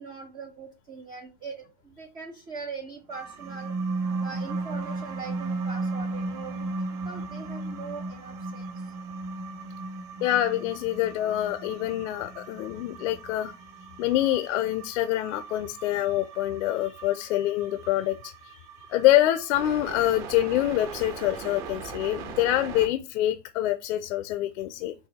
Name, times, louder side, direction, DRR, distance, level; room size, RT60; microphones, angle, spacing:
voice 1, 0.0-3.7 4.2-6.7 7.0-8.7, right 5 dB, 15° right, 2 dB, 0.3 m, -41 dB
sound 1, 3.1-22.9, right 7 dB, 55° right, 1.3 m, -44 dB
sound 2, 3.3-14.2, right 2 dB, 35° right, 1.2 m, -34 dB
voice 2, 10.2-13.5 14.0-18.6 18.9-24.9, left 14 dB, 70° left, 10 dB, 0.6 m, -26 dB
4.8 x 2.7 x 4.1 m, 0.31 s
supercardioid pair, 130°, 37 cm